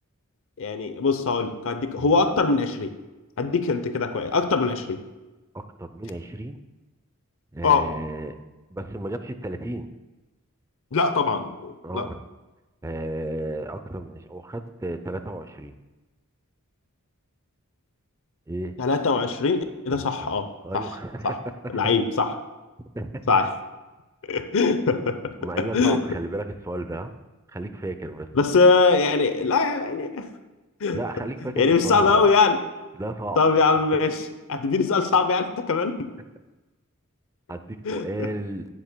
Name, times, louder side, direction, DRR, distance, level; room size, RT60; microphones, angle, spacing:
voice 1, 0.6-2.9 3.4-5.0 7.6-7.9 10.9-12.1 18.8-20.5 20.7-20.8 21.2-21.3 21.7-22.3 23.3-23.5 24.3-25.2 25.6-26.0 28.3-30.3 30.8-31.0 31.4-32.6 33.4-36.0 37.8-38.3, left 4 dB, 65° left, 9 dB, 0.7 m, -22 dB
voice 2, 5.5-6.6 7.5-8.3 8.7-9.9 11.8-12.2 12.8-15.7 18.5-18.8 19.9-20.3 20.6-21.3 22.9-23.2 25.4-27.1 27.5-28.3 30.9-32.3 32.9-33.4 37.5-38.7, right 1 dB, 15° right, 9 dB, 0.5 m, -33 dB
16.5 x 7.4 x 2.2 m, 1.1 s
head